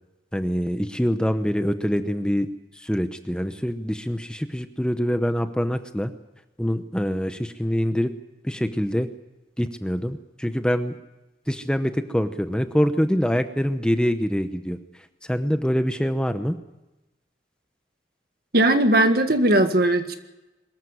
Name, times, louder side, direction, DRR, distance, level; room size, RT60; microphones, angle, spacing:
voice 1, 0.3-2.5 2.8-6.1 6.6-8.1 8.4-9.1 9.6-10.9 11.5-14.8 15.2-16.5, equal, 5° left, 9 dB, 0.8 m, -24 dB
voice 2, 18.5-20.2, right 1 dB, 55° right, 7 dB, 1.8 m, -18 dB
23.0 x 14.0 x 9.7 m, 1.0 s
head